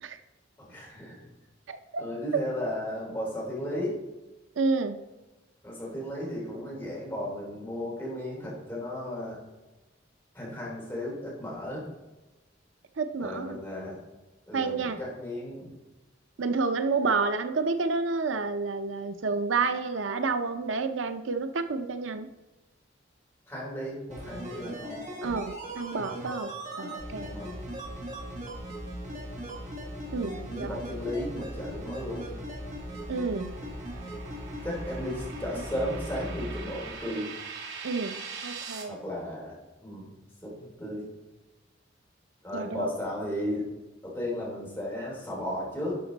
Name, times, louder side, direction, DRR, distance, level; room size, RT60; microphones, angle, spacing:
voice 1, 0.6-1.2 2.0-4.0 5.6-9.4 10.3-11.9 13.2-14.0 14.5-15.8 23.5-25.0 27.2-27.6 30.2-32.3 34.6-37.3 38.9-39.6 39.8-40.1 40.4-41.1 42.4-43.6 44.0-46.0, left 1 dB, 10° left, -5 dB, 3.5 m, -35 dB
voice 2, 1.7-2.0 2.3-2.4 4.6-5.0 13.0-13.6 14.5-15.0 16.4-22.3 25.2-27.3 30.1-30.8 33.1-33.6 37.8-39.0 42.5-42.9, right 4 dB, 80° right, 9 dB, 0.6 m, -30 dB
sound 1, 24.1-36.6 36.9-37.0, right 1 dB, 40° right, 2.0 m, -38 dB
sound 2, 32.0-38.8, right 5 dB, 60° right, 2.2 m, -43 dB
11.5 x 6.0 x 4.0 m, 1.1 s
head